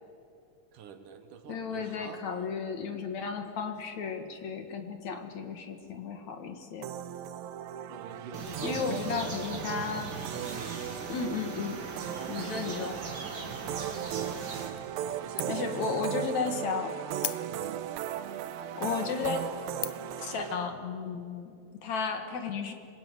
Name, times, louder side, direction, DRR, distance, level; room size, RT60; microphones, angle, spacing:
voice 1, 0.7-2.5 7.9-9.0 9.4-9.7 10.4-11.1 12.2-13.1 15.0-16.5 17.4-17.7, right 7 dB, 65° right, 8 dB, 2.8 m, -46 dB
voice 2, 1.5-6.9 8.6-10.1 11.1-11.8 12.3-13.0 15.5-16.9 18.8-19.4 20.2-22.7, left 5 dB, 60° left, 6 dB, 2.6 m, -34 dB
sound 1, 6.8-20.5, right 10 dB, 85° right, 2.6 m, -37 dB
sound 2, 8.3-14.7, right 3 dB, 30° right, 2.5 m, -40 dB
sound 3, 14.8-15.1 15.4-15.8 16.2-16.3 17.2-17.9 18.5-18.6 19.2-19.4 19.8-20.2, left 15 dB, 75° left, 1.9 m, -37 dB
25.5 x 21.0 x 9.6 m, 2.5 s
omnidirectional pair, 4.1 m